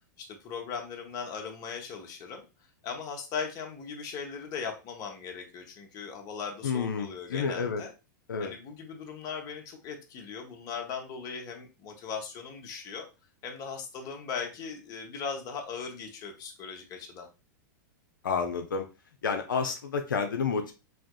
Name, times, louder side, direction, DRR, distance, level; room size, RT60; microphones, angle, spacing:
voice 1, 0.2-2.4 2.8-7.9 8.4-13.1 13.4-17.3, left 6 dB, 35° left, 3 dB, 0.8 m, -38 dB
voice 2, 6.6-7.8 8.3-8.5 18.2-18.8 19.2-20.7, left 5 dB, 85° left, 5 dB, 0.4 m, -30 dB
3.4 x 2.7 x 2.3 m, 0.30 s
hypercardioid pair, 110°, 10 cm